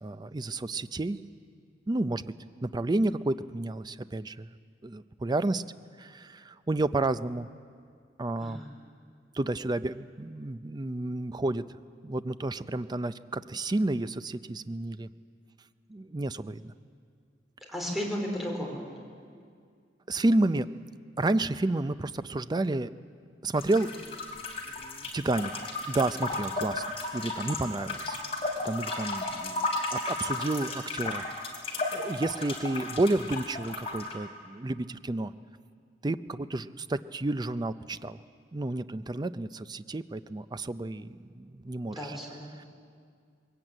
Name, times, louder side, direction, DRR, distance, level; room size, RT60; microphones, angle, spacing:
voice 1, 0.0-1.2 1.9-2.3 2.6-4.5 4.8-5.6 6.0-7.5 8.2-8.6 9.3-11.6 12.0-15.1 15.9-16.7 20.1-20.7 21.2-22.9 23.4-24.4 24.8-31.2 31.7-35.3 36.0-38.2 38.5-42.2 42.6-42.7, right 2 dB, 25° right, 13 dB, 0.5 m, -31 dB
voice 2, 17.7-18.8 41.9-42.5, equal, ahead, -1 dB, 4.1 m, -34 dB
sound 1, 23.5-34.1, left 2 dB, 35° left, 3.3 m, -34 dB
21.5 x 17.0 x 8.9 m, 2.2 s
head